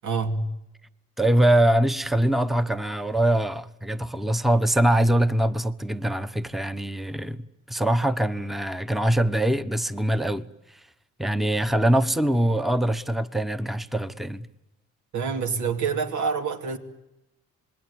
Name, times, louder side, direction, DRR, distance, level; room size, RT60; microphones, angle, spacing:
voice 1, 0.0-0.4 15.1-16.8, right 5 dB, 75° right, 2.7 m, -26 dB
voice 2, 1.2-7.4 7.7-10.5 11.2-14.5, right 1 dB, ahead, 1.0 m, -23 dB
27.0 x 21.0 x 9.8 m
cardioid pair, 90°, 30 cm